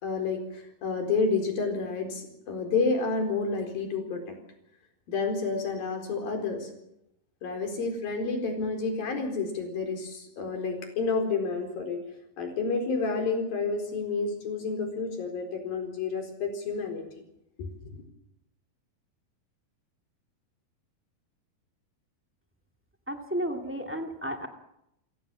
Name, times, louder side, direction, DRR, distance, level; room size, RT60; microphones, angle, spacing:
voice 1, 0.0-4.4 5.1-6.7 7.4-12.0 12.4-17.0 17.6-18.0, left 4 dB, 65° left, 4 dB, 6.0 m, -30 dB
voice 2, 23.1-24.5, equal, 5° right, 5 dB, 0.9 m, -32 dB
29.0 x 17.0 x 7.5 m, 0.82 s
omnidirectional pair, 4.5 m